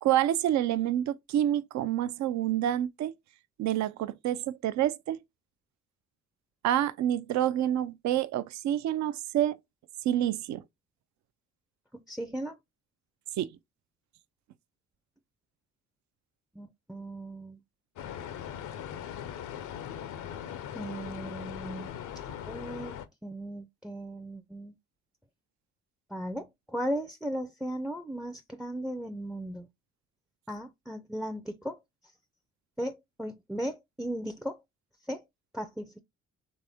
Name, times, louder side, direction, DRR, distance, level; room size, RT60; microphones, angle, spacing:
voice 1, 0.0-3.1 3.6-5.2 6.6-9.6 10.0-10.6 13.4-13.5, right 12 dB, 65° right, 0.5 m, -28 dB
voice 2, 12.1-12.6 16.6-17.6 20.7-21.9 22.3-24.7 26.1-29.7 30.5-31.8 32.8-34.6 35.1-35.2 35.5-36.0, equal, ahead, 0.4 m, -36 dB
sound 1, 18.0-23.1, left 9 dB, 80° left, 0.7 m, -40 dB
4.1 x 3.4 x 3.4 m
cardioid pair, 90°, 30 cm